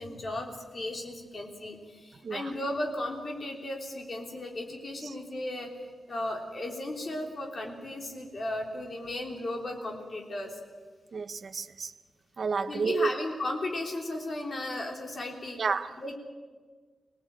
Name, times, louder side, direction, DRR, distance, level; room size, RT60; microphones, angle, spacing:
voice 1, 0.0-5.7 6.1-10.6 12.6-15.6 16.0-16.2, left 1 dB, 35° left, 3.5 m, -35 dB
voice 2, 11.1-11.9 12.4-13.1 15.6-15.9, right 5 dB, 45° right, 0.9 m, -30 dB
24.5 x 18.5 x 8.9 m
wide cardioid pair, 180°, 0 cm